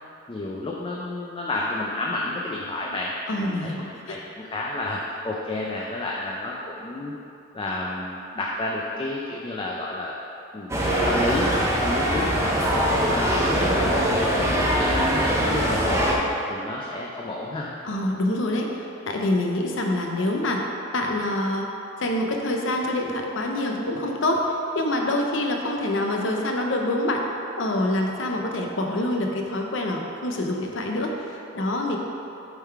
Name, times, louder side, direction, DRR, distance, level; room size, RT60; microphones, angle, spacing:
voice 1, 0.3-3.7 4.1-7.1 7.5-10.2 10.5-13.9 14.3-17.7, left 2 dB, 25° left, -3 dB, 0.4 m, -31 dB
voice 2, 3.3-4.2 17.8-20.6 20.9-21.7 22.0-27.2 27.6-32.0, left 1 dB, 70° left, 1 dB, 0.8 m, -26 dB
sound 1, 10.7-16.1, equal, 15° right, 0.7 m, -22 dB
8.0 x 3.7 x 4.6 m, 2.9 s
head